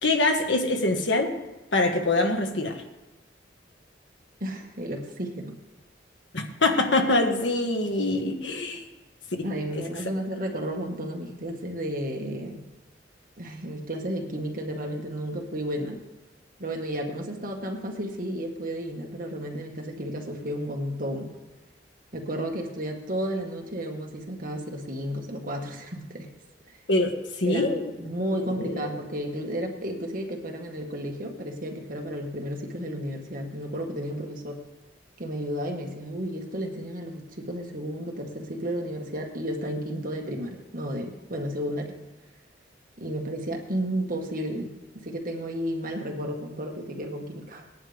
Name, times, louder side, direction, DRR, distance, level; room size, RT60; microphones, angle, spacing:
voice 1, 0.0-1.3 1.7-2.8 6.3-8.8 26.9-27.1 27.4-27.9 28.6-28.9, left 2 dB, 75° left, 4 dB, 1.6 m, -24 dB
voice 2, 4.4-5.6 8.7-8.8 9.4-12.6 13.4-16.0 16.6-21.3 22.1-26.3 27.4-34.6 35.2-41.9 43.0-47.6, equal, 45° right, 2 dB, 1.7 m, -32 dB
19.0 x 10.5 x 3.5 m, 1.1 s
head